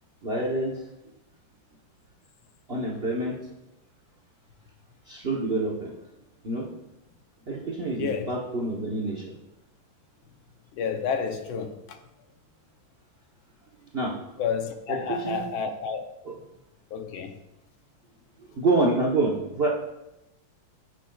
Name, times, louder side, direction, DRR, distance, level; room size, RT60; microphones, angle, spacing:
voice 1, 0.2-0.8 2.7-3.4 5.1-5.9 6.4-6.7 7.5-9.3 13.9-14.2 14.9-15.4 16.2-16.3 18.6-19.7, right 2 dB, 40° right, -2 dB, 0.9 m, -27 dB
voice 2, 7.9-8.3 10.7-12.0 14.4-16.1 16.9-17.4, left 6 dB, 80° left, 6 dB, 1.5 m, -30 dB
15.0 x 6.1 x 2.3 m, 0.93 s
omnidirectional pair, 2.2 m